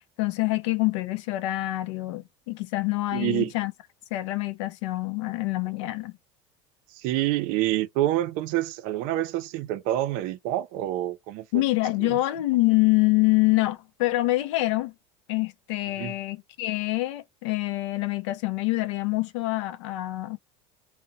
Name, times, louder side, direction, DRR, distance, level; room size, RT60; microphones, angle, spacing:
voice 1, 0.2-3.7 4.1-6.1 11.5-14.9 15.3-20.4, left 19 dB, 80° left, 0.4 m, -26 dB
voice 2, 3.1-3.5 6.9-11.6 12.0-12.2 16.0-16.1, right 14 dB, 65° right, 0.5 m, -27 dB
2.6 x 2.1 x 2.5 m
supercardioid pair, 115°, 15 cm